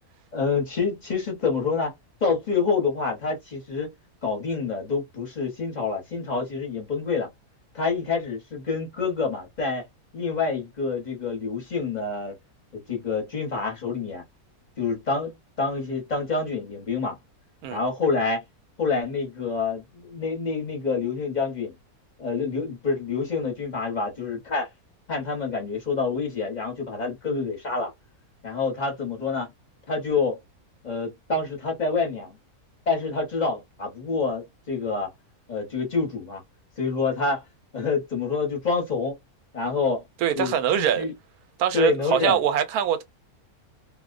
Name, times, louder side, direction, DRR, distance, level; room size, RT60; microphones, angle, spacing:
voice 1, 0.3-1.9 2.2-3.9 4.2-7.3 7.7-9.8 10.1-12.3 12.7-14.2 14.8-17.2 17.7-18.4 18.8-21.7 22.2-24.7 25.1-27.9 28.4-29.5 29.9-30.4 30.8-32.4 32.9-35.1 35.5-36.4 36.8-37.4 37.7-39.2 39.5-40.0 40.4-41.1 41.7-42.4, left 4 dB, 35° left, 0.9 m, -27 dB
voice 2, 40.2-41.1 41.6-43.0, right 9 dB, 85° right, 1.1 m, -23 dB
2.5 x 2.1 x 2.4 m
omnidirectional pair, 1.6 m